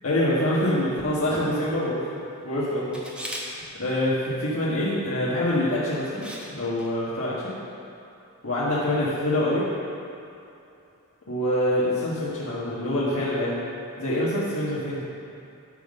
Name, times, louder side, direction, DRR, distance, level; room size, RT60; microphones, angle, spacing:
voice 1, 0.0-3.0 3.3-3.4 3.7-6.3 6.5-7.5 8.4-9.6 11.3-13.6 14.0-15.0, left 1 dB, 70° left, -8 dB, 1.6 m, -25 dB
Camera, 2.9-3.5 5.5-5.7 6.2-6.5 6.8-6.9, equal, 5° right, 1.0 m, -36 dB
11.0 x 4.1 x 6.6 m, 2.7 s
head